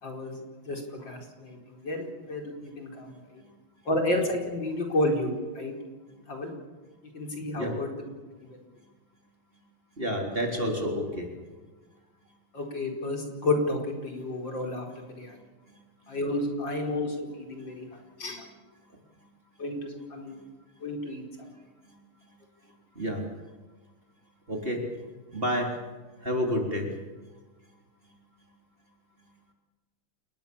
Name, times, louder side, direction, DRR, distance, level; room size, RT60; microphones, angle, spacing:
voice 1, 0.0-3.2 3.9-5.8 6.3-6.5 7.1-7.9 12.5-15.4 16.1-17.8 18.2-18.5 19.6-20.3 20.8-21.2, left 1 dB, 60° left, 2 dB, 5.3 m, -31 dB
voice 2, 10.0-11.3 15.7-15.8 16.0-16.2 19.2-19.3 20.3-20.4 21.8-22.0 22.2-22.3 22.6-23.3 24.5-24.9 25.3-25.8 26.2-26.9 27.2-27.3 28.0-28.1, equal, 25° right, 1 dB, 4.0 m, -30 dB
28.5 x 21.0 x 7.1 m, 1.3 s
omnidirectional pair, 2.3 m